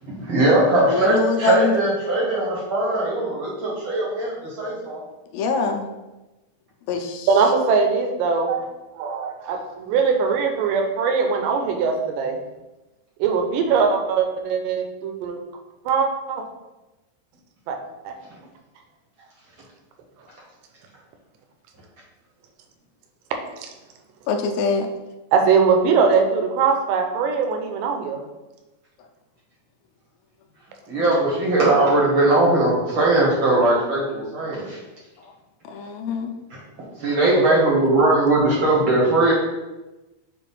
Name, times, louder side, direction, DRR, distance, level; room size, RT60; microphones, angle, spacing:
voice 1, 0.0-5.0 18.3-18.4 30.9-34.8 36.5-39.3, right 2 dB, 60° right, -5 dB, 1.3 m, -20 dB
voice 2, 0.8-1.7 5.3-5.9 6.9-7.3 24.3-24.9 35.2-35.3 35.7-36.3, left 4 dB, 80° left, 4 dB, 2.5 m, -24 dB
voice 3, 7.3-8.7 9.0-12.4 13.2-15.4 15.9-16.4 17.7-17.8 18.0-18.1 25.3-28.2 37.3-37.4, right 5 dB, 75° right, 4 dB, 2.1 m, -21 dB
7.0 x 2.5 x 5.4 m, 1.1 s
omnidirectional pair, 4.2 m